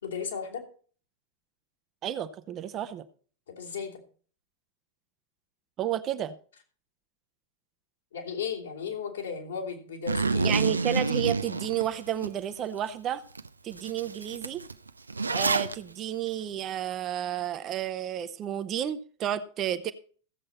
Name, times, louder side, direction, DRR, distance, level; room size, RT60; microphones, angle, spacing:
voice 1, 0.0-0.6 3.5-4.0 8.1-10.6, left 6 dB, 65° left, 3.1 m, -35 dB
voice 2, 2.0-3.0 5.8-6.3 10.4-13.2 13.6-14.6 15.3-19.9, right 11 dB, 30° right, 0.8 m, -31 dB
Zipper (clothing), 10.1-12.3 12.8-12.9 13.4-13.5 13.7-15.7, right 4 dB, 80° right, 0.5 m, -28 dB
15.5 x 7.7 x 4.2 m
figure-of-eight pair, 90°, 0 cm